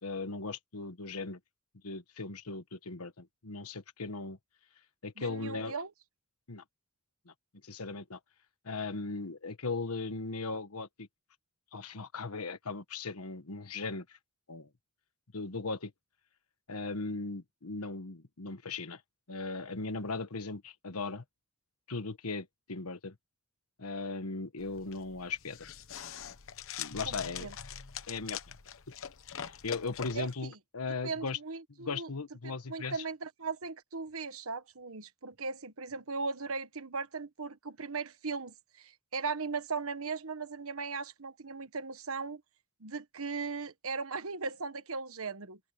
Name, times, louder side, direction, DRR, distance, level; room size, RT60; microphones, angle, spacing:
voice 1, 0.0-1.4 1.8-4.4 5.0-5.8 6.5-6.6 7.3-7.4 7.6-8.2 8.6-11.1 11.7-14.2 14.5-14.7 15.3-15.9 16.7-19.0 19.3-21.2 21.9-23.1 23.8-25.7 26.8-27.5 28.1-28.6 29.3-31.4 31.8-33.0, left 3 dB, 85° left, 1.4 m, -38 dB
voice 2, 5.2-5.9 27.1-27.5 30.1-30.3 31.0-32.1 32.4-42.4 42.8-45.6, right 4 dB, 70° right, 1.4 m, -38 dB
sound 1, 24.6-30.3, left 8 dB, 65° left, 1.0 m, -43 dB
open air
head